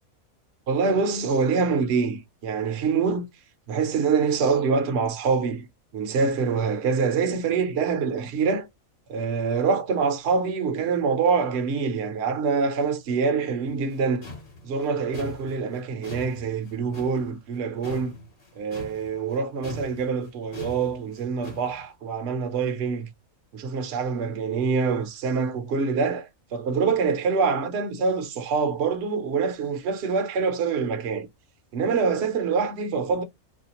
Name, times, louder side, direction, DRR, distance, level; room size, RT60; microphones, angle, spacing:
voice 1, 0.7-3.2 3.7-5.7 5.9-8.7 9.1-14.3 14.6-18.1 18.6-23.1 23.5-31.3 31.7-33.2, right 5 dB, 55° right, 0.8 m, -25 dB
sound 1, 13.7-19.4 19.6-21.8, left 1 dB, 30° left, 0.9 m, -41 dB
4.3 x 2.3 x 2.8 m
omnidirectional pair, 1.5 m